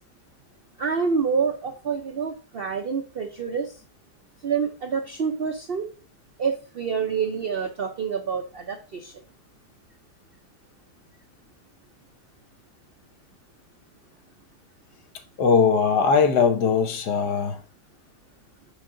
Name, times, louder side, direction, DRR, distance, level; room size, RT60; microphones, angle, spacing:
voice 1, 0.8-3.8 4.4-5.9 6.4-9.1, right 6 dB, 85° right, 0.5 m, -27 dB
voice 2, 15.4-17.6, left 5 dB, 75° left, 1.5 m, -20 dB
5.9 x 5.2 x 3.7 m
omnidirectional pair, 1.8 m